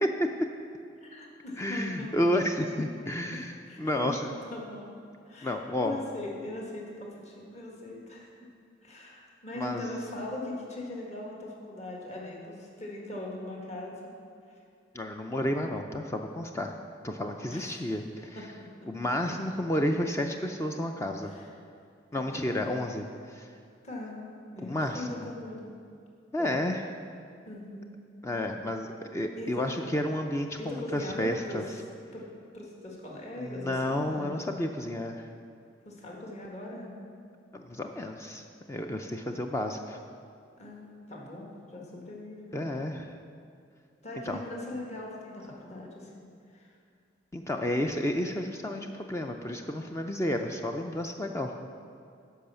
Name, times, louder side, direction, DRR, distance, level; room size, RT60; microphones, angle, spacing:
voice 1, 1.0-2.4 3.3-4.1 4.5-4.9 5.2-8.3 8.8-14.0 17.5-17.9 18.3-18.7 21.2-21.5 22.2-22.6 23.8-24.1 24.5-25.7 26.4-26.6 27.5-27.9 29.4-29.6 30.6-31.6 32.1-32.3 32.5-34.4 35.8-36.9 40.6-42.7 44.0-46.1 46.5-46.7, left 1 dB, 40° left, -2 dB, 1.7 m, -40 dB
voice 2, 1.6-4.3 5.4-6.0 9.6-9.8 14.9-16.7 17.0-18.4 18.9-21.3 22.1-23.5 24.6-25.3 26.3-26.8 28.2-31.6 33.4-35.3 37.5-38.4 38.7-40.0 42.5-43.1 44.3-44.4 47.3-51.5, left 1 dB, 15° left, 4 dB, 0.4 m, -31 dB
10.5 x 5.5 x 6.9 m, 2.3 s
head